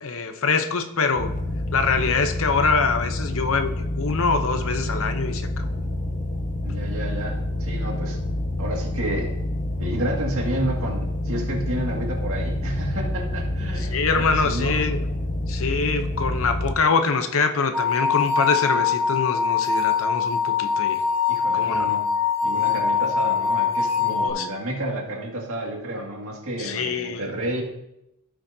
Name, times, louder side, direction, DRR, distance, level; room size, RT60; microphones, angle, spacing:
voice 1, 0.0-1.3 1.7-5.7 13.8-15.0 15.4-21.0 21.5-21.9 24.1-24.5 26.6-27.2, left 4 dB, 65° left, 8 dB, 0.8 m, -24 dB
sound 1, 1.1-16.7, left 1 dB, 35° left, 0.6 m, -28 dB
voice 2, 6.6-8.2 8.6-9.3 9.8-14.8 21.3-22.0 22.4-27.6, right 1 dB, 65° right, -1 dB, 2.2 m, -30 dB
sound 2, 17.7-24.3, left 6 dB, 15° right, 2.1 m, -23 dB
16.0 x 6.3 x 2.8 m, 0.85 s
head